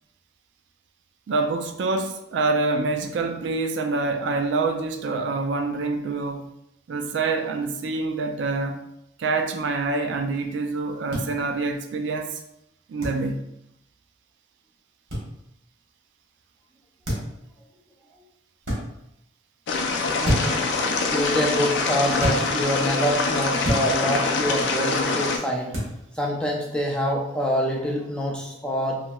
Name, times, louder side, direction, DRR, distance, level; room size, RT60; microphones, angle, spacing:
voice 1, 1.3-6.4 6.9-8.8 9.2-12.4 12.9-13.4, right 3 dB, 70° right, 0.3 m, -26 dB
sound 1, 11.1-11.3 13.0-13.2 15.1-15.3 17.0-17.4 18.6-18.8 20.2-20.6 22.2-22.4 23.6-23.9 25.7-25.9, equal, 90° right, 1.2 m, -25 dB
sound 2, 19.7-25.4, left 3 dB, 70° left, 0.4 m, -24 dB
voice 2, 20.2-20.6 21.1-25.8 26.1-29.0, equal, 5° left, 0.4 m, -26 dB
3.0 x 2.7 x 2.2 m
head